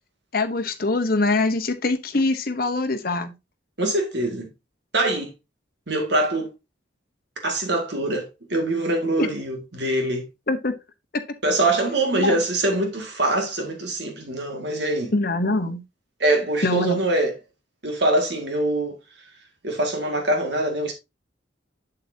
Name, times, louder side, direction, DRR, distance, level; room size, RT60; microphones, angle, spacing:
voice 1, 0.3-3.3 9.2-9.3 10.5-10.7 11.1-11.4 12.1-12.4 15.1-15.8 16.6-17.0, left 2 dB, 50° left, 1.0 m, -23 dB
voice 2, 3.8-4.5 4.9-5.3 5.9-6.5 7.4-10.3 11.4-15.1 16.2-17.3 17.8-19.0 19.6-20.9, right 1 dB, 60° right, 2.1 m, -23 dB
7.8 x 7.6 x 2.7 m
head